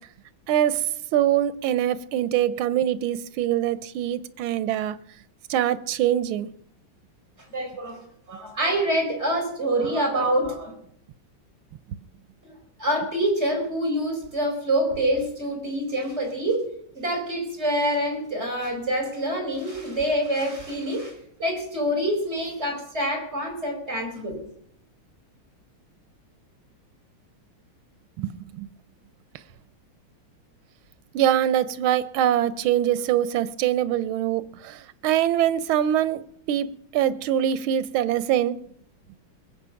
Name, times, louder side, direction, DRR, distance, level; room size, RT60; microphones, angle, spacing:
voice 1, 0.5-0.9 1.1-5.0 5.5-6.5 28.2-28.7 31.1-36.2 36.5-36.7 36.9-38.6, right 11 dB, 90° right, 1.6 m, -23 dB
voice 2, 7.5-8.0 8.3-10.7 12.4-12.5 12.8-16.7 16.9-21.1 21.4-24.4, right 1 dB, 30° right, 4.9 m, -26 dB
21.5 x 7.8 x 5.8 m
omnidirectional pair, 2.2 m